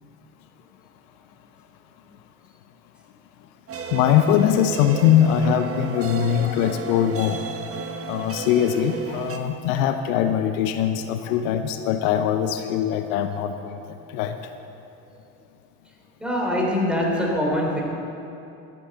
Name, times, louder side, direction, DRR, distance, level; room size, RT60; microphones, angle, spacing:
sound 1, 3.7-9.4, right 5 dB, 30° right, 1.4 m, -33 dB
voice 1, 3.9-7.4 8.1-13.8 14.1-14.4, left 9 dB, 75° left, 8 dB, 0.9 m, -21 dB
voice 2, 16.2-17.8, left 1 dB, ahead, -1 dB, 3.9 m, -23 dB
13.5 x 8.6 x 8.0 m, 2.8 s
hypercardioid pair, 75°, 43 cm